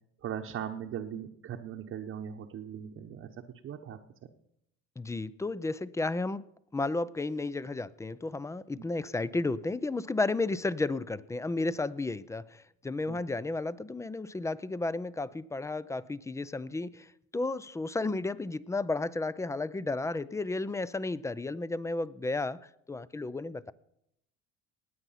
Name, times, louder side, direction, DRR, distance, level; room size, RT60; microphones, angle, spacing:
voice 1, 0.2-4.0 8.8-8.9 13.1-13.2, right 9 dB, 45° right, 2 dB, 1.0 m, -39 dB
voice 2, 5.0-6.4 6.7-22.6 22.9-23.7, left 2 dB, 10° left, 18 dB, 0.4 m, -33 dB
19.0 x 8.1 x 5.7 m, 0.78 s
cardioid pair, 110°, 29 cm